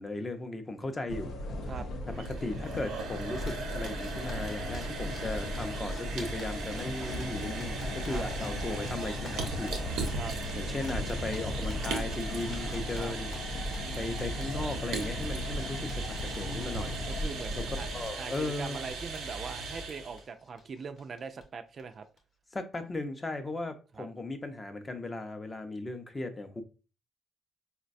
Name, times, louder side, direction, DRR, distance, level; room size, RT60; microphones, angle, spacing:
voice 1, 0.0-1.3 2.3-9.7 10.6-13.3 14.0-17.0 17.6-17.7 17.9-18.8 22.5-26.6, left 2 dB, 25° left, 0.5 m, -37 dB
sound 1, 1.1-18.1, left 1 dB, 80° left, 0.5 m, -37 dB
sound 2, 2.0-20.2, right 3 dB, 85° right, 0.7 m, -38 dB
Zipper (clothing), 3.3-21.4 21.8-21.9 22.2-22.3 22.6-23.0, equal, 55° left, 0.8 m, -50 dB
voice 2, 13.8-14.1 17.1-22.1 23.9-24.1, right 5 dB, 50° right, 0.3 m, -42 dB
3.9 x 2.2 x 2.5 m
cardioid pair, 90°, 0 cm